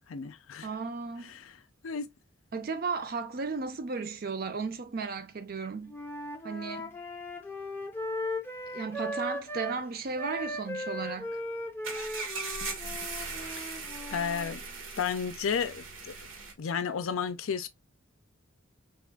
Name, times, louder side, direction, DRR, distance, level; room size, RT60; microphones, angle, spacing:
voice 1, 0.1-0.7 1.3-1.4 1.8-2.1 13.6-13.8 14.1-14.6 15.0-16.1 16.6-17.7, left 6 dB, 80° left, 0.4 m, -32 dB
voice 2, 0.6-1.4 2.5-6.0 6.4-6.9 8.7-11.4, right 4 dB, 45° right, 0.4 m, -35 dB
Wind instrument woodwind instrument, 5.9-9.8 10.2-14.5, left 1 dB, 10° left, 0.5 m, -37 dB
sound 1, 11.8-16.5, right 4 dB, 75° right, 0.8 m, -39 dB
3.5 x 2.5 x 2.2 m
head